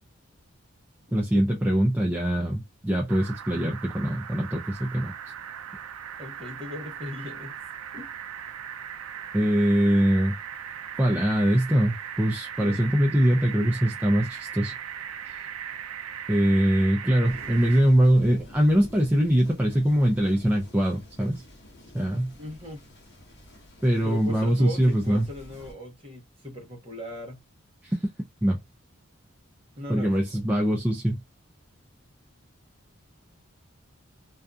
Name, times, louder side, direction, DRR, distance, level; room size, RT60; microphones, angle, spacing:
voice 1, 1.1-5.1 9.3-10.4 11.0-14.7 15.3-15.4 16.3-21.4 21.9-22.3 23.8-25.3 27.8-28.1 28.4-28.6 29.9-31.2, equal, 10° right, 0.3 m, -23 dB
sound 1, 3.1-17.8, right 9 dB, 85° right, 0.4 m, -38 dB
voice 2, 6.2-7.6 7.9-8.1 12.6-12.8 22.4-22.8 24.0-27.4 29.8-30.4, left 1 dB, 25° right, 0.8 m, -38 dB
Thunder, 17.2-25.7, left 1 dB, 50° left, 0.9 m, -49 dB
2.6 x 2.4 x 2.2 m
head